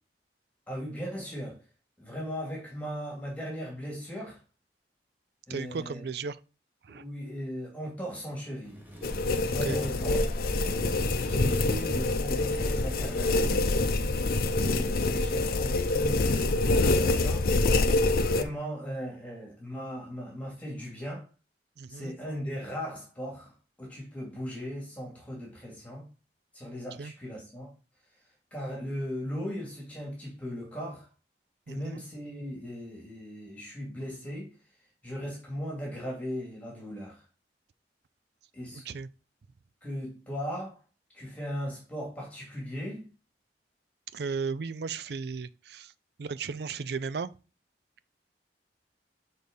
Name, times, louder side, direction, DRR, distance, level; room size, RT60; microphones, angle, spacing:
voice 1, 0.7-1.6 2.0-4.4 5.5-6.0 6.9-8.8 9.5-10.2 11.2-13.7 14.6-17.5 18.2-21.3 21.9-23.5 23.8-26.0 26.5-27.7 28.5-31.1 31.7-34.5 35.0-37.2 38.5-38.8 39.8-40.8 41.1-43.1, equal, 10° left, 2.4 m, -37 dB
voice 2, 5.5-6.4 6.9-7.0 9.5-9.8 21.8-22.1 27.0-27.1 31.7-32.0 38.9-39.1 44.1-45.9 46.2-47.3, right 5 dB, 65° right, 0.4 m, -35 dB
sound 1, 8.6-13.9, equal, 10° right, 1.4 m, -47 dB
sound 2, 9.0-18.4, left 2 dB, 55° left, 0.6 m, -26 dB
6.5 x 4.0 x 5.3 m
head